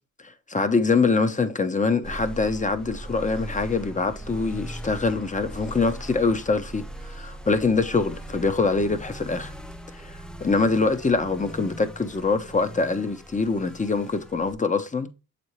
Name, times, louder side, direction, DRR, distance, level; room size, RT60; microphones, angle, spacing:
voice 1, 0.2-9.5 10.0-15.1, left 4 dB, 25° left, 0.9 m, -24 dB
sound 1, 2.0-14.5, right 1 dB, 5° left, 0.5 m, -39 dB
7.0 x 4.3 x 3.2 m
cardioid pair, 75°, 29 cm